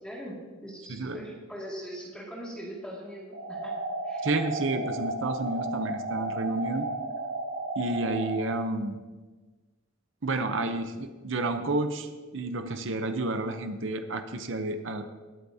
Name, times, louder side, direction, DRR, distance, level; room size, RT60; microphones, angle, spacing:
voice 1, 0.0-3.8 4.0-4.3, equal, 5° left, -5 dB, 2.3 m, -41 dB
sound 1, 3.3-8.3, right 2 dB, 85° right, 2.5 m, -33 dB
voice 2, 4.2-6.9 7.8-9.0 10.2-15.1, right 2 dB, 65° right, 7 dB, 0.8 m, -30 dB
20.5 x 8.3 x 2.8 m, 1.3 s
head